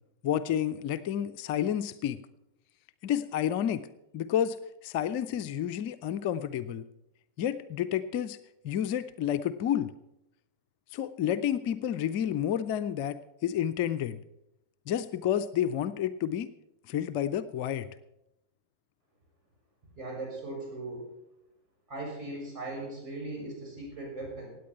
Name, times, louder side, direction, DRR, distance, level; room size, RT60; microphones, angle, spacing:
voice 1, 0.2-2.2 3.0-3.9 4.1-4.6 4.8-6.9 7.4-8.4 8.6-9.9 10.9-14.2 14.9-16.5 16.9-17.9, left 10 dB, 45° left, 13 dB, 0.5 m, -30 dB
voice 2, 19.9-21.1 21.9-24.6, right 2 dB, 30° right, 0 dB, 6.5 m, -38 dB
17.0 x 9.2 x 5.8 m, 0.87 s
figure-of-eight pair, 90°, 0 cm